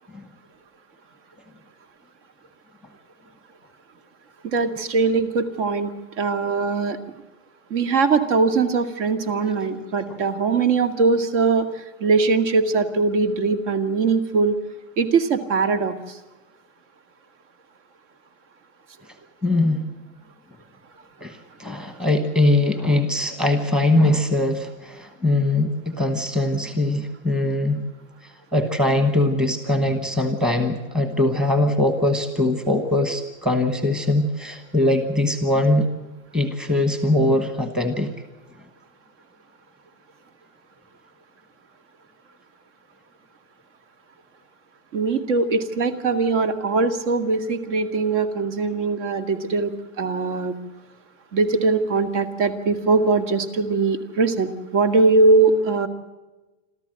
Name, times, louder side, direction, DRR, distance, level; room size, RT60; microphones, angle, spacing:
voice 1, 4.4-5.9 6.2-7.0 7.7-14.6 15.0-16.2 44.9-49.7 50.0-50.5 51.3-55.9, right 4 dB, 60° right, 8 dB, 2.3 m, -21 dB
voice 2, 19.4-19.9 21.2-27.8 28.2-35.9 36.3-38.1, left 1 dB, ahead, 7 dB, 1.1 m, -21 dB
27.0 x 14.0 x 7.7 m, 1.1 s
supercardioid pair, 170°, 40 cm